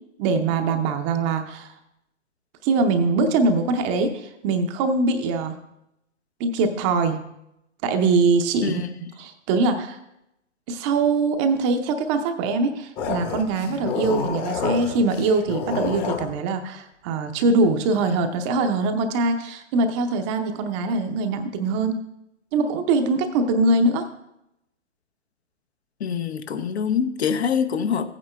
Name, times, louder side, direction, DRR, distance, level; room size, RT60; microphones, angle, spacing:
voice 1, 0.2-1.7 2.6-5.6 6.4-7.2 7.8-8.8 9.2-10.0 10.7-21.9 22.5-24.1, right 3 dB, 25° right, 7 dB, 0.6 m, -22 dB
sound 1, 13.0-16.3, left 6 dB, 25° left, 1.0 m, -28 dB
voice 2, 26.0-28.1, left 7 dB, 60° left, 9 dB, 0.8 m, -24 dB
15.5 x 8.9 x 2.3 m, 0.83 s
figure-of-eight pair, 115°, 36 cm